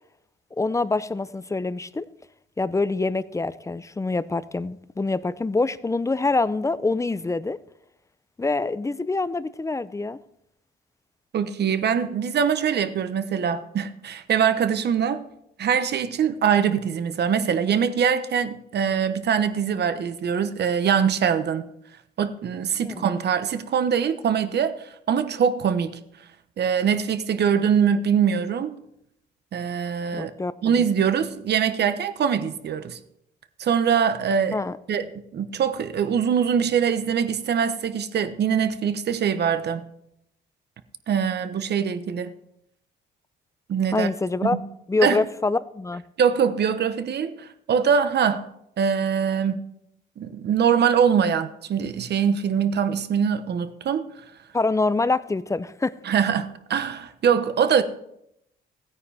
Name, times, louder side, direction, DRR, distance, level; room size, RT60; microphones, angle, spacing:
voice 1, 0.6-2.1 2.6-7.6 8.4-10.2 22.8-23.1 30.1-30.7 34.5-34.8 43.9-44.6 44.9-46.0 54.5-56.0, left 3 dB, 15° left, 0.5 m, -25 dB
voice 2, 11.3-15.2 15.6-21.7 22.2-24.7 25.1-26.0 26.6-28.8 29.5-30.3 30.6-33.0 33.6-34.6 34.9-35.0 35.3-39.8 41.1-42.3 43.7-44.1 44.4-44.6 45.0-45.2 46.2-48.5 48.8-49.7 50.2-54.1 56.0-57.8, right 7 dB, 55° right, 1.0 m, -23 dB
16.0 x 9.4 x 3.5 m
cardioid pair, 90°, 20 cm